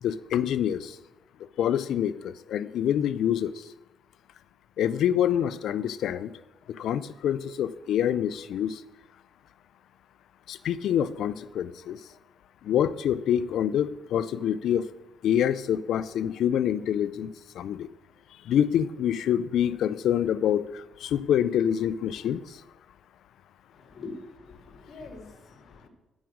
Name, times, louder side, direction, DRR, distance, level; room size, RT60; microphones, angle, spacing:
voice 1, 0.0-1.0 1.6-3.5 4.8-6.3 6.7-8.8 10.5-12.0 12.6-14.9 15.2-17.9 18.5-22.6, left 10 dB, 75° left, 16 dB, 0.4 m, -26 dB
voice 2, 23.7-25.9, left 3 dB, 55° left, 0 dB, 3.0 m, -44 dB
8.9 x 6.0 x 6.3 m, 1.0 s
cardioid pair, 90°, 0 cm